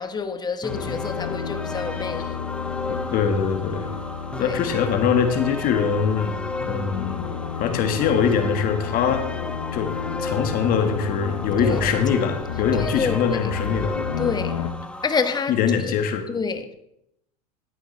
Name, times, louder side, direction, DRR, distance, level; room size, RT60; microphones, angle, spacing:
voice 1, 0.0-2.4 4.4-4.6 11.6-11.9 12.7-13.4 14.2-14.6 15.0-15.6 16.3-16.7, left 5 dB, 20° left, 1.1 m, -28 dB
sound 1, 0.6-15.4, left 2 dB, 5° left, 0.7 m, -34 dB
sound 2, 0.7-14.7, left 8 dB, 85° left, 0.8 m, -32 dB
voice 2, 3.1-3.9 4.4-6.3 6.6-7.3 7.6-9.3 9.7-9.9 10.2-14.0 15.5-16.2, left 7 dB, 50° left, 1.6 m, -22 dB
13.5 x 9.0 x 3.3 m
hypercardioid pair, 90°, 20 cm